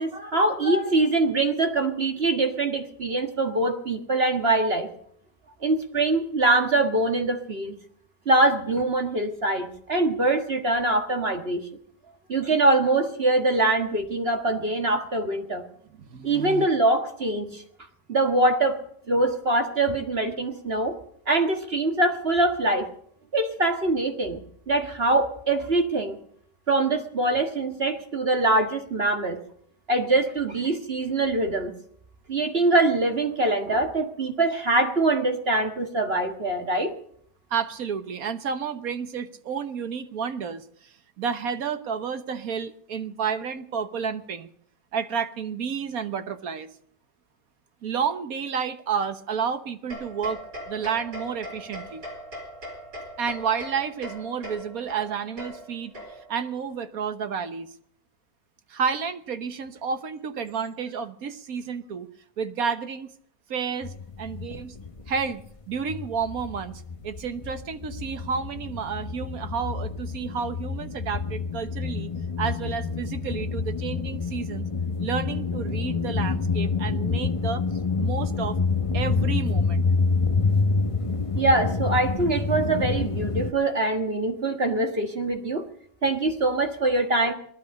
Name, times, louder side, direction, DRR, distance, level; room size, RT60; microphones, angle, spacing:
voice 1, 0.0-4.9 5.6-7.7 8.2-11.6 12.3-15.6 16.2-17.6 18.1-18.8 19.1-21.0 21.3-22.9 23.3-24.4 24.7-26.2 26.7-29.4 29.9-31.7 32.3-36.9 81.3-85.6 86.0-87.3, right 2 dB, 35° right, 5 dB, 1.7 m, -23 dB
voice 2, 15.9-16.7 37.5-44.5 44.9-46.7 47.8-50.4 50.7-52.0 53.2-55.9 56.3-57.7 58.7-62.1 62.4-63.1 63.5-64.7 65.1-72.1 72.4-74.7 75.0-77.6 78.0-78.6 78.9-79.8, right 6 dB, 60° right, 10 dB, 1.5 m, -31 dB
sound 1, 49.9-56.5, equal, 90° right, 5.2 m, -40 dB
sound 2, 63.8-65.5 65.7-83.5, left 4 dB, 30° left, 0.6 m, -27 dB
19.5 x 12.5 x 5.3 m, 0.64 s
omnidirectional pair, 1.8 m